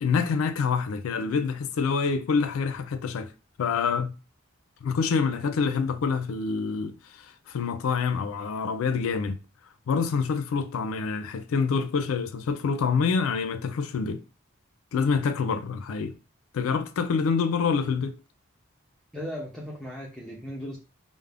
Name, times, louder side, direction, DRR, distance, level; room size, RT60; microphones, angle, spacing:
voice 1, 0.0-3.3 3.6-4.1 4.8-9.4 9.9-14.2 14.9-16.2 16.5-18.2, left 5 dB, 80° left, 0.3 m, -26 dB
voice 2, 19.1-20.8, equal, ahead, 0.5 m, -37 dB
2.4 x 2.0 x 3.2 m
head